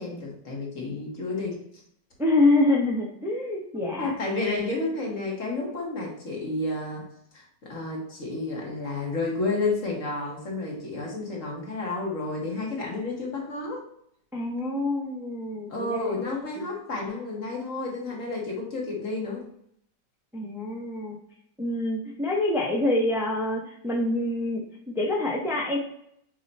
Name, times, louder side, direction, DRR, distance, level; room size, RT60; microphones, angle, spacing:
voice 1, 0.0-1.8 3.7-7.1 7.3-13.9 15.7-19.5, left 3 dB, 45° left, -2 dB, 1.8 m, -31 dB
voice 2, 2.2-4.1 14.3-16.0 20.3-21.2 21.6-25.8, left 2 dB, ahead, -1 dB, 0.8 m, -26 dB
7.8 x 3.1 x 4.2 m, 0.71 s
omnidirectional pair, 1.9 m